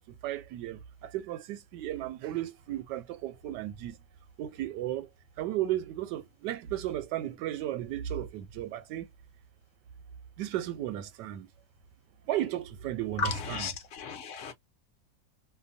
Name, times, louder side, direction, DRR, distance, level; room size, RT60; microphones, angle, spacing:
voice 1, 0.2-3.9 4.4-5.1 5.4-9.1 10.4-11.5 12.3-13.7, right 13 dB, 85° right, 1.2 m, -34 dB
voice 2, 13.2-14.5, left 5 dB, 55° left, 0.9 m, -34 dB
2.7 x 2.2 x 2.5 m
omnidirectional pair, 1.8 m